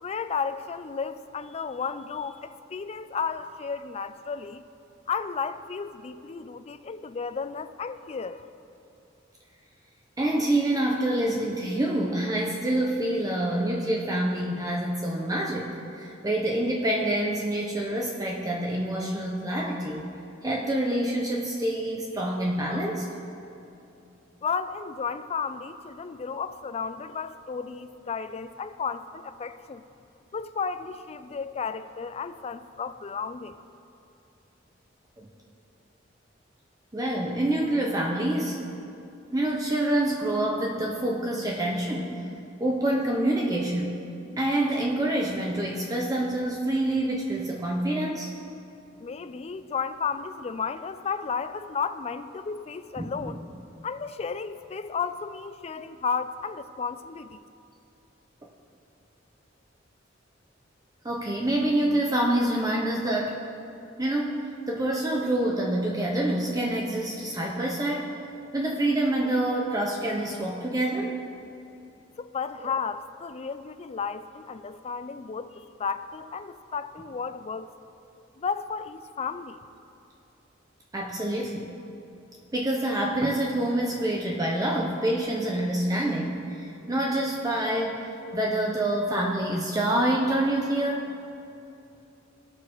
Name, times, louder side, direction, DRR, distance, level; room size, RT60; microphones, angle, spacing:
voice 1, 0.0-4.6 5.1-8.5 24.4-29.8 30.3-33.6 49.0-53.4 53.8-57.4 72.2-77.7 78.4-79.6, left 5 dB, 35° left, 12 dB, 0.4 m, -33 dB
voice 2, 10.2-20.1 20.4-23.1 35.2-35.3 36.9-38.6 39.3-42.2 42.6-43.9 44.4-48.3 53.0-53.3 61.0-63.4 64.0-68.1 68.5-71.1 72.6-72.7 80.9-81.7 82.5-91.1, right 1 dB, 20° right, -2 dB, 0.7 m, -27 dB
18.5 x 6.5 x 3.1 m, 2.7 s
head